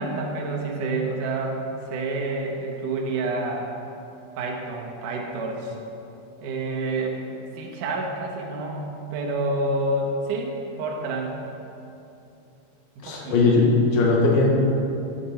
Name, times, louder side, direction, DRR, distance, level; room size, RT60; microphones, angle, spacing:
voice 1, 0.0-3.7 4.4-5.8 6.4-7.2 7.5-8.8 9.1-11.4 13.0-13.4, right 2 dB, 70° right, 0 dB, 2.0 m, -28 dB
voice 2, 13.0-14.5, left 3 dB, 65° left, -3 dB, 3.4 m, -19 dB
15.0 x 8.4 x 4.4 m, 2.8 s
omnidirectional pair, 5.4 m